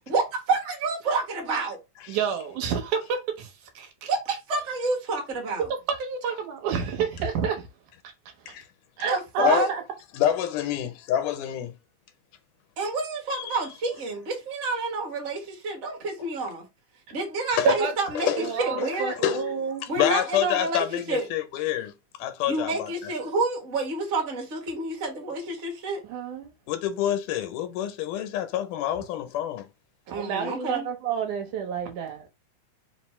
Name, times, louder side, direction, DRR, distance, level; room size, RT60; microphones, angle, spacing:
voice 1, 0.0-1.8 4.1-5.7 9.1-9.7 12.8-16.7 17.1-19.1 19.9-21.3 22.5-26.0 30.1-30.9, right 3 dB, 55° right, 0.7 m, -29 dB
voice 2, 2.1-4.1 5.9-7.7 8.4-8.5 9.0-9.8 17.6-17.9 18.4-19.8 26.0-26.5 30.1-32.3, right 6 dB, 80° right, 2.3 m, -29 dB
voice 3, 9.4-9.7 10.1-11.8 13.3-13.6 17.6-17.7 18.2-18.9 19.2-19.5 20.0-21.9 22.2-23.1 26.7-29.7, left 11 dB, 90° left, 2.2 m, -27 dB
5.1 x 2.0 x 4.2 m
omnidirectional pair, 3.5 m